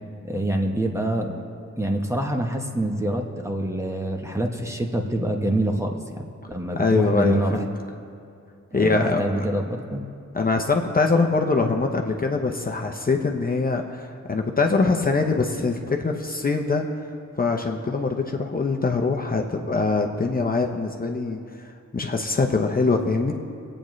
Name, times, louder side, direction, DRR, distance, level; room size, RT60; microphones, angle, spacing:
voice 1, 0.3-1.4 1.8-7.6 8.8-10.0, right 1 dB, 10° right, 2 dB, 0.9 m, -26 dB
voice 2, 6.7-7.7 8.7-9.4 10.3-16.9 17.4-23.3, left 3 dB, 30° left, 3 dB, 0.7 m, -23 dB
23.5 x 8.8 x 3.2 m, 2.4 s
wide cardioid pair, 130°, 29 cm